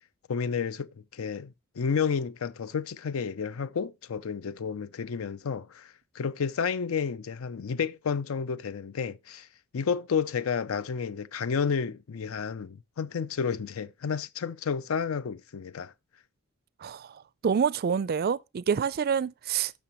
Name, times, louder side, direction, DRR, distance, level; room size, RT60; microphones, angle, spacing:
voice 1, 0.3-9.5 9.7-15.9, left 6 dB, 75° left, 0.5 m, -31 dB
voice 2, 16.8-19.7, right 7 dB, 45° right, 0.3 m, -27 dB
12.5 x 5.8 x 3.0 m
head